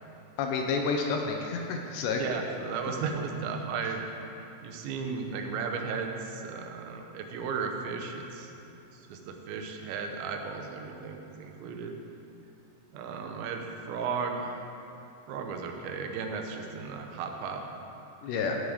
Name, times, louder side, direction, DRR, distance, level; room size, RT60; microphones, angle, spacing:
voice 1, 0.4-2.2 18.2-18.6, left 4 dB, 80° left, 2 dB, 2.7 m, -29 dB
voice 2, 2.2-4.0 4.6-8.5 8.9-12.0 12.9-14.6 15.3-17.6 18.3-18.5, right 5 dB, 85° right, 3 dB, 3.1 m, -35 dB
14.5 x 5.5 x 4.9 m, 2.8 s
omnidirectional pair, 5.2 m